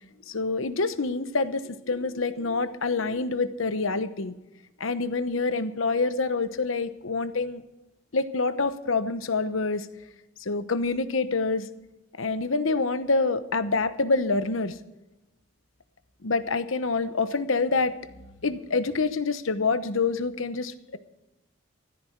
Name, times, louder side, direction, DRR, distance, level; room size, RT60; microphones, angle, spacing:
voice 1, 0.3-4.3 4.8-7.6 8.1-9.9 10.4-11.7 12.2-14.8 16.2-21.0, left 3 dB, 75° left, 12 dB, 0.9 m, -27 dB
15.0 x 13.5 x 4.6 m, 1.0 s
head